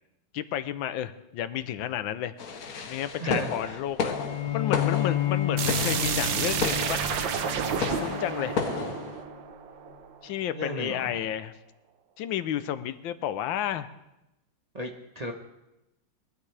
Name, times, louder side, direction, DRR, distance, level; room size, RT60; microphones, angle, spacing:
voice 1, 0.3-2.3 2.9-4.2 4.5-7.0 7.7-8.6 10.2-11.5 12.2-13.9, left 11 dB, 90° left, 12 dB, 1.5 m, -31 dB
sound 1, 2.4-9.2, left 5 dB, 55° left, 1.4 m, -33 dB
voice 2, 3.2-3.8 8.8-8.9 10.5-11.2 14.7-15.3, right 1 dB, 30° right, 1 dB, 0.8 m, -34 dB
Bowed string instrument, 4.1-9.6, left 9 dB, 70° left, 2.9 m, -31 dB
sound 2, 5.6-10.3, right 7 dB, 80° right, 1.6 m, -30 dB
21.5 x 12.5 x 3.3 m, 0.92 s
omnidirectional pair, 2.1 m